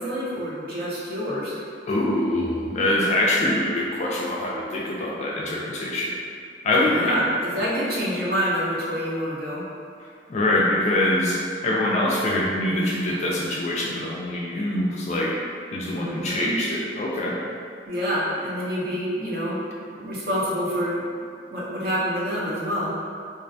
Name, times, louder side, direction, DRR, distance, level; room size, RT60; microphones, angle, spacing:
voice 1, 0.0-1.5 6.8-7.2 7.5-9.6 15.9-16.5 17.9-19.6 20.0-21.0 21.5-22.9, equal, 55° right, -7 dB, 0.6 m, -27 dB
voice 2, 1.9-6.1 6.6-7.2 10.3-15.3 15.7-17.6, left 1 dB, 40° left, -4 dB, 0.3 m, -24 dB
2.5 x 2.1 x 2.6 m, 2.3 s
head